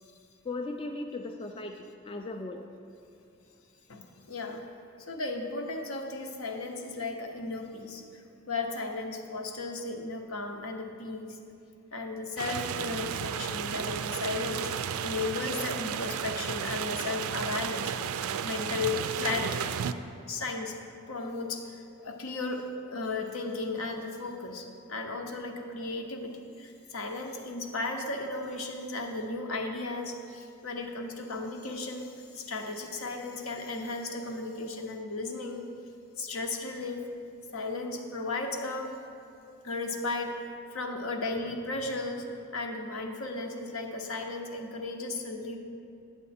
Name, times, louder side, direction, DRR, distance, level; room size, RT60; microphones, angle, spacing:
voice 1, 0.4-2.7, left 2 dB, 25° left, 4 dB, 0.3 m, -37 dB
voice 2, 3.9-4.6 5.0-8.0 8.5-11.4 11.9-17.9 18.4-19.7 20.3-20.8 21.1-35.7 36.2-37.0 37.5-38.9 39.6-42.3 42.5-45.6, left 3 dB, 75° left, 3 dB, 0.8 m, -35 dB
sound 1, 12.4-19.9, right 8 dB, 80° right, 0.3 m, -33 dB
9.4 x 7.2 x 4.2 m, 2.5 s
head